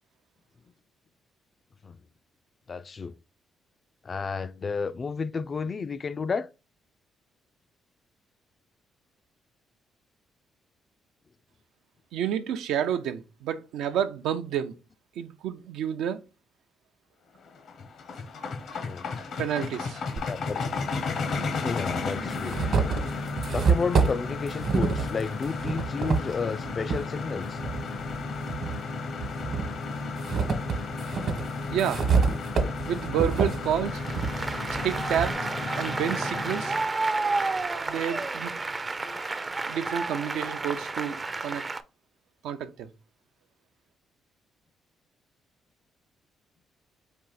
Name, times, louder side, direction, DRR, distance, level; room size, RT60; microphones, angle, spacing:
voice 1, 2.7-3.2 4.0-6.5 18.8-19.0 20.2-20.6 21.4-22.6 23.5-27.6 39.0-39.2, left 5 dB, 40° left, 0.3 m, -32 dB
voice 2, 12.1-14.7 15.2-16.2 19.4-20.0 31.7-32.0 32.9-34.0 34.7-35.4 35.8-36.8 37.9-38.6 39.7-41.6 42.4-42.9, right 9 dB, 85° right, 0.5 m, -29 dB
sound 1, 17.5-36.9, left 4 dB, 65° left, 0.8 m, -34 dB
sound 2, 20.2-20.3 21.3-21.4 21.9-27.0 27.6-28.8 29.2-35.3, right 5 dB, 60° right, 1.1 m, -28 dB
Applause, 33.9-41.8, right 3 dB, 25° right, 0.4 m, -31 dB
4.5 x 2.8 x 3.9 m
cardioid pair, 90°, 0 cm